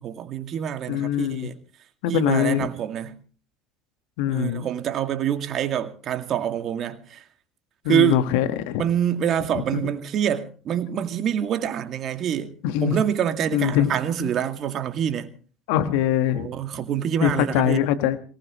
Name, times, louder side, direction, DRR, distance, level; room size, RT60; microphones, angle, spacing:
voice 1, 0.0-1.6 2.1-3.2 4.3-7.2 7.9-8.2 8.8-12.5 12.8-15.3 16.3-17.8, right 9 dB, 50° right, 2.2 m, -26 dB
voice 2, 0.9-1.5 2.0-2.7 4.2-4.6 7.8-8.8 9.5-9.8 12.6-13.0 13.5-13.9 14.2-14.3 15.7-16.5 17.2-18.2, left 11 dB, 70° left, 1.6 m, -23 dB
23.0 x 19.0 x 3.1 m
hypercardioid pair, 70°, 0 cm